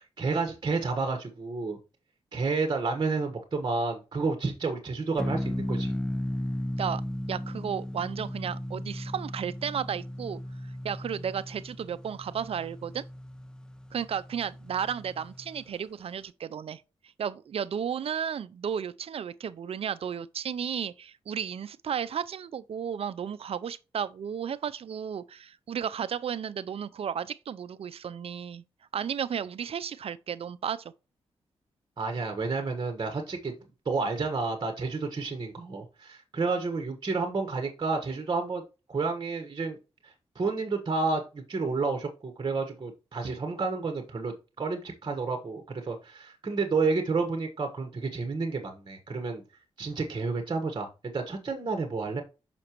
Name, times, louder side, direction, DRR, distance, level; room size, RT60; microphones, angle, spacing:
voice 1, 0.0-1.8 2.3-5.9 32.0-33.5 33.8-38.6 38.9-39.8 40.0-49.4 49.8-52.2, right 4 dB, 45° right, 1.3 m, -30 dB
sound 1, 5.2-15.7, equal, 5° left, 0.6 m, -36 dB
voice 2, 7.3-10.4 10.8-13.0 13.9-16.8 17.2-28.6 28.9-30.9, right 8 dB, 65° right, 0.5 m, -33 dB
6.4 x 5.9 x 3.0 m
cardioid pair, 65°, 11 cm